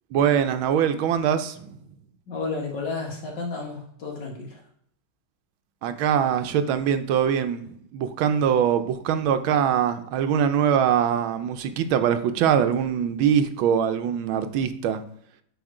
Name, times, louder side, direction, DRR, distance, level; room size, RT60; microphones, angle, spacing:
voice 1, 0.1-1.8 5.8-15.0, right 8 dB, 90° right, 9 dB, 1.5 m, -23 dB
voice 2, 2.3-4.6, left 4 dB, 60° left, 0 dB, 2.2 m, -32 dB
8.0 x 3.7 x 4.9 m, 0.67 s
omnidirectional pair, 2.1 m